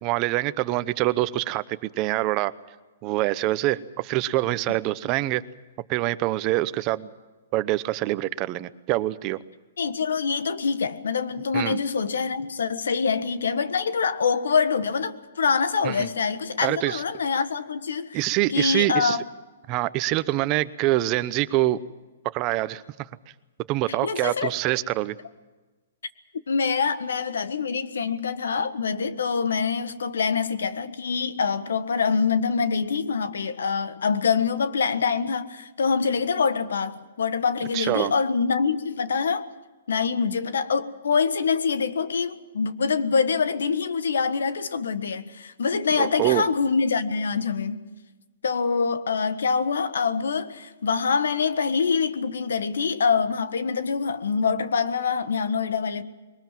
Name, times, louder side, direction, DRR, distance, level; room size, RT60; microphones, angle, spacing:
voice 1, 0.0-2.5 3.0-5.4 5.9-7.1 7.5-9.4 11.5-11.8 15.8-16.1 16.6-17.0 18.1-19.2 19.7-21.8 22.3-23.1 23.7-25.1 37.7-38.1 46.0-46.4, right 16 dB, 30° right, 0.8 m, -25 dB
voice 2, 9.8-18.2 18.5-19.2 23.9-24.5 26.5-39.5 39.9-47.8 48.4-56.0, left 5 dB, 90° left, 1.5 m, -25 dB
22.0 x 19.5 x 7.6 m
hypercardioid pair, 160°, 0 cm